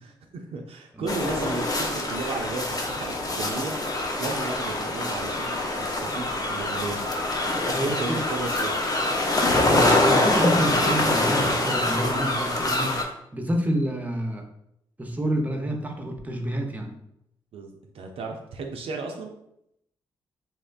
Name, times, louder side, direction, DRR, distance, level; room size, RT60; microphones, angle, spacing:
voice 1, 0.0-3.8 4.2-7.1 7.6-8.7 17.5-19.3, right 3 dB, 65° right, 3 dB, 0.4 m, -34 dB
sound 1, 1.1-13.0, left 2 dB, 35° left, 0.6 m, -25 dB
voice 2, 7.7-8.2 9.5-13.0 13.3-14.5 15.0-17.0, right 1 dB, 15° right, 3 dB, 0.6 m, -28 dB
2.9 x 2.1 x 2.4 m, 0.78 s
hypercardioid pair, 40°, 10 cm